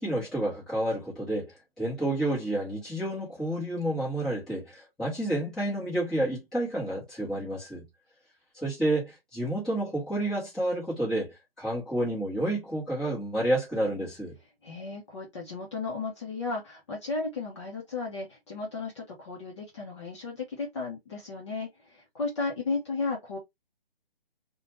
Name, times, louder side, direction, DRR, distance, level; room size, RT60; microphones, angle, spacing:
voice 1, 0.0-7.8 8.5-14.3, right 1 dB, ahead, 0.9 m, -30 dB
voice 2, 14.6-23.4, left 3 dB, 30° left, 0.7 m, -34 dB
2.7 x 2.2 x 2.9 m
hypercardioid pair, 155°, 30 cm